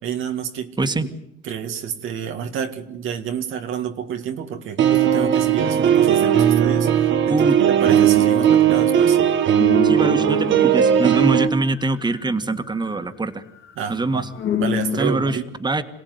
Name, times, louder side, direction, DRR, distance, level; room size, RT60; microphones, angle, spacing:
voice 1, 0.0-0.9 1.4-7.4 7.7-9.2 13.8-14.2 14.6-15.5, right 8 dB, 85° right, 5 dB, 2.1 m, -29 dB
voice 2, 0.8-1.1 7.3-7.6 9.8-13.4 13.9-14.3 15.0-15.8, right 2 dB, 20° right, 8 dB, 1.8 m, -23 dB
sound 1, 4.8-11.5, right 9 dB, 70° right, 1.5 m, -17 dB
sound 2, 9.6-13.1 13.5-15.2, left 8 dB, 80° left, 2.6 m, -29 dB
27.5 x 17.0 x 9.6 m, 0.79 s
cardioid pair, 90°, 20 cm